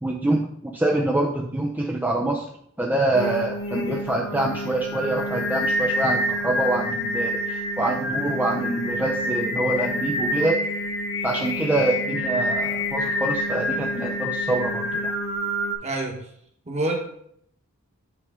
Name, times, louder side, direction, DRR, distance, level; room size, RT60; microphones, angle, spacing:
voice 1, 0.0-2.5 2.8-10.6 11.2-15.1, right 2 dB, 10° right, -1 dB, 0.5 m, -25 dB
Singing, 3.1-15.7, left 1 dB, 65° left, 1.0 m, -27 dB
voice 2, 15.8-16.2 16.7-16.9, right 2 dB, 30° right, 1 dB, 1.3 m, -26 dB
8.5 x 4.7 x 3.6 m, 0.70 s
head